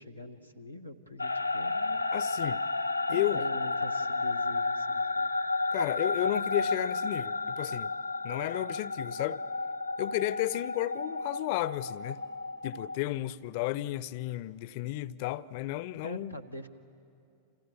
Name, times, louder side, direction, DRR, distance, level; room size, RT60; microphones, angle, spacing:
voice 1, 0.0-2.0 3.1-5.3 16.0-16.7, equal, 90° right, 1.3 m, -44 dB
sound 1, 1.2-13.0, left 3 dB, 85° left, 0.6 m, -32 dB
voice 2, 2.1-2.6 3.1-3.4 5.7-7.9 8.2-9.4 10.0-12.2 12.6-16.3, left 16 dB, 50° left, 0.6 m, -33 dB
29.0 x 27.0 x 7.1 m
figure-of-eight pair, 90°, 0 cm